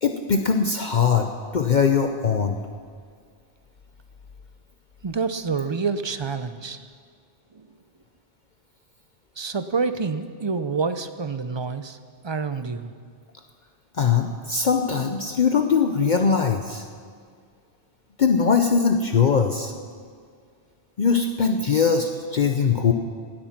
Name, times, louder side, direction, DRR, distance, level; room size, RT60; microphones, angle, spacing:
voice 1, 0.0-2.6 13.9-16.8 18.2-19.7 21.0-22.9, left 6 dB, 50° left, 5 dB, 0.7 m, -21 dB
voice 2, 5.0-6.9 7.5-7.7 9.4-12.0 12.2-12.9, right 5 dB, 40° right, 11 dB, 0.4 m, -27 dB
18.5 x 8.7 x 5.9 m, 2.1 s
omnidirectional pair, 1.2 m